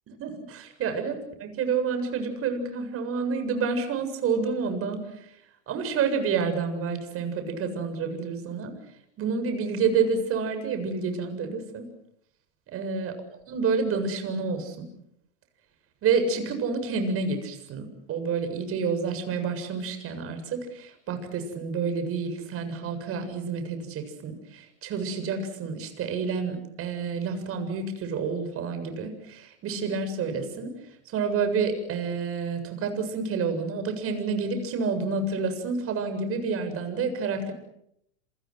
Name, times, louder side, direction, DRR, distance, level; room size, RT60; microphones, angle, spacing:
voice 1, 0.2-1.1 1.4-5.4 5.7-8.7 9.2-11.9 12.7-13.1 13.5-14.9 16.0-30.7 31.1-37.5, right 5 dB, 40° right, 7 dB, 7.5 m, -29 dB
28.5 x 27.5 x 6.4 m, 0.75 s
hypercardioid pair, 100°, 35 cm